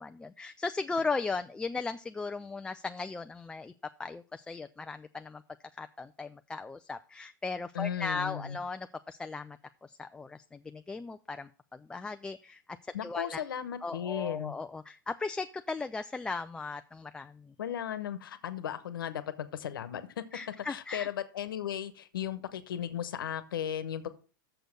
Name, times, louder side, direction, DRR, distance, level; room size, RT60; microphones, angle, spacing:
voice 1, 0.0-5.4 5.7-13.4 13.8-17.5 20.3-21.1, left 4 dB, 10° left, 9 dB, 0.3 m, -37 dB
voice 2, 7.7-8.6 12.9-14.5 17.6-20.2 20.7-24.1, left 9 dB, 85° left, 13 dB, 1.1 m, -36 dB
6.8 x 6.1 x 6.5 m, 0.37 s
hypercardioid pair, 125°, 11 cm